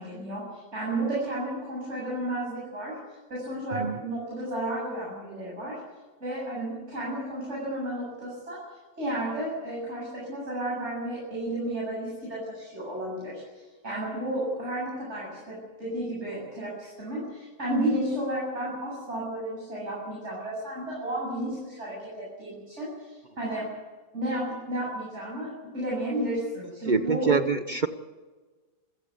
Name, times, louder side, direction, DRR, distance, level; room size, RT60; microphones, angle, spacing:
voice 1, 0.0-3.0 3.3-5.8 6.2-8.6 9.0-23.7 24.1-27.3, right 1 dB, 35° right, -5 dB, 8.2 m, -32 dB
voice 2, 26.8-27.9, right 5 dB, 75° right, 9 dB, 0.4 m, -25 dB
28.0 x 15.0 x 8.2 m, 1.3 s
omnidirectional pair, 2.1 m